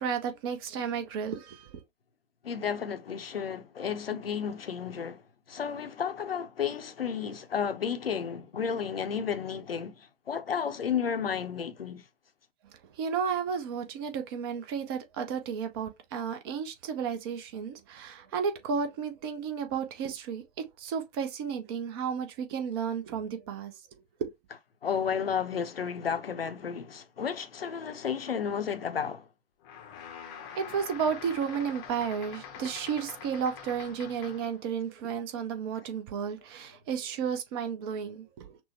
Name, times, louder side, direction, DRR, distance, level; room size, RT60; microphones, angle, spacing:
voice 1, 0.0-1.8 13.0-20.4 20.8-23.7 24.2-24.3 30.6-38.6, right 7 dB, 25° right, 0.6 m, -33 dB
voice 2, 2.4-5.2 5.5-12.0 24.8-29.3, left 7 dB, 70° left, 0.7 m, -32 dB
sound 1, 29.6-34.6, left 8 dB, 25° left, 0.7 m, -45 dB
6.0 x 2.1 x 2.9 m
figure-of-eight pair, 115°, 30 cm